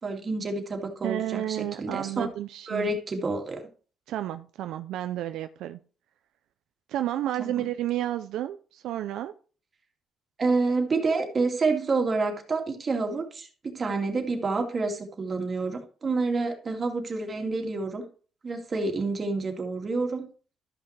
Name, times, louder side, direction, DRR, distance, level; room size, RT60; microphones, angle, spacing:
voice 1, 0.0-2.3 2.7-3.6 7.4-7.7 10.4-18.0 18.4-20.3, right 3 dB, 40° right, 3 dB, 2.2 m, -28 dB
voice 2, 1.0-2.9 4.1-5.8 6.9-9.3, right 12 dB, 85° right, 9 dB, 0.4 m, -31 dB
13.0 x 5.8 x 3.3 m, 0.39 s
cardioid pair, 90°, 0 cm